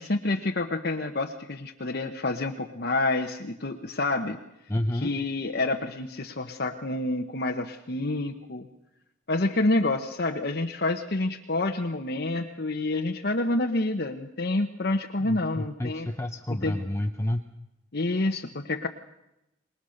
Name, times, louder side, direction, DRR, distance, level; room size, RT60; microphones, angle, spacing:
voice 1, 0.0-4.4 4.9-8.7 9.3-16.1 16.6-16.7 17.9-18.9, left 2 dB, 55° left, 2 dB, 1.1 m, -28 dB
voice 2, 4.7-5.1 15.2-17.5, left 1 dB, 15° left, 4 dB, 0.8 m, -30 dB
25.5 x 21.0 x 6.6 m, 0.88 s
head